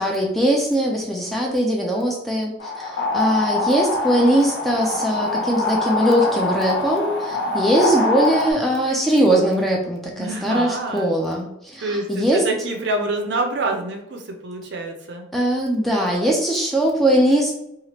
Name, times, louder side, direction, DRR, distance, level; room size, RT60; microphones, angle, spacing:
voice 1, 0.0-12.4 15.3-17.5, right 1 dB, ahead, -1 dB, 0.3 m, -20 dB
sound 1, 2.6-8.5, left 2 dB, 85° left, 0.6 m, -24 dB
voice 2, 10.2-11.2 11.8-15.3, right 2 dB, 60° right, 4 dB, 0.5 m, -26 dB
2.9 x 2.4 x 2.9 m, 0.83 s
head